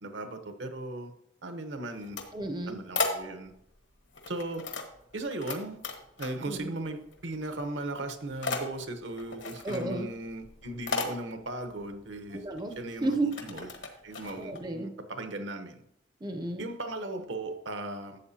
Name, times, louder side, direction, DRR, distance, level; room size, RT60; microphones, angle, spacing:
voice 1, 0.0-1.1 1.4-2.2 2.7-3.5 4.3-4.7 5.1-5.8 6.2-12.4 12.8-13.1 13.4-13.7 14.0-15.8 16.6-18.2, right 2 dB, 65° right, 7 dB, 1.0 m, -37 dB
sound 1, 1.8-3.7 4.1-5.6 5.8-6.7 7.0-7.6 7.9-14.6, left 4 dB, 70° left, 1.3 m, -36 dB
voice 2, 2.3-2.8 6.5-6.7 9.6-10.1 12.4-13.3 14.3-14.9 16.2-16.6, right 2 dB, 20° right, 6 dB, 0.6 m, -33 dB
12.0 x 7.6 x 2.8 m, 0.78 s
head